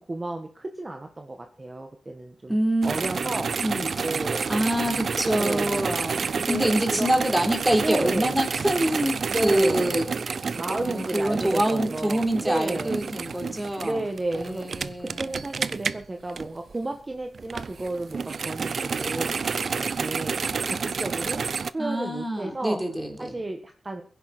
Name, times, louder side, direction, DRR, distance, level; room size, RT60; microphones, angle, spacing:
voice 1, 0.1-2.6 2.8-3.6 4.0-4.5 5.1-5.9 6.4-7.1 7.8-8.4 9.3-10.1 10.6-13.0 13.8-14.9 15.2-19.3 19.8-20.4 20.7-21.4 21.7-22.8 23.2-24.0, right 2 dB, 30° right, 4 dB, 1.7 m, -32 dB
voice 2, 2.5-3.0 3.6-4.1 4.5-10.0 10.7-14.0 14.3-15.4 21.8-23.4, right 1 dB, 10° right, 4 dB, 3.7 m, -26 dB
sound 1, 2.8-16.9 17.3-21.7, right 5 dB, 70° right, 0.6 m, -30 dB
22.5 x 10.5 x 4.4 m, 0.42 s
wide cardioid pair, 85°, 0 cm